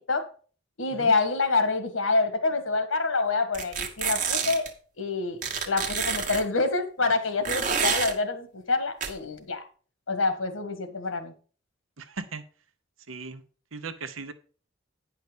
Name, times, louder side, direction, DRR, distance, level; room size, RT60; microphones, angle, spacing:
voice 1, 0.8-4.7 5.0-9.6 10.1-11.3, left 3 dB, 85° left, 9 dB, 1.6 m, -27 dB
sound 1, 3.5-4.7 5.4-6.4 7.4-8.1 9.0-9.1, right 6 dB, 40° right, 1.1 m, -28 dB
voice 2, 12.0-12.4 13.1-13.4 13.7-14.3, right 4 dB, 85° right, 11 dB, 1.0 m, -37 dB
9.6 x 5.8 x 5.1 m, 0.41 s
head